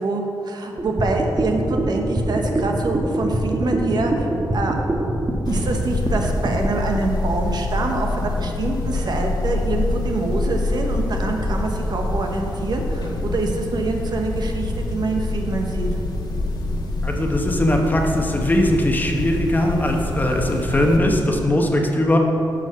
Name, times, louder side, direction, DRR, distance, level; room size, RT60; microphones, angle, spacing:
voice 1, 0.0-4.3 4.5-4.8 5.5-15.9, right 3 dB, 60° right, 2 dB, 1.1 m, -25 dB
sound 1, 0.8-6.7, right 1 dB, 25° right, 1.2 m, -23 dB
sound 2, 5.4-21.0, left 2 dB, 65° left, 1.4 m, -26 dB
voice 2, 17.0-22.2, left 1 dB, 20° left, 1 dB, 1.1 m, -20 dB
8.6 x 5.2 x 6.7 m, 2.9 s
cardioid pair, 95°, 8 cm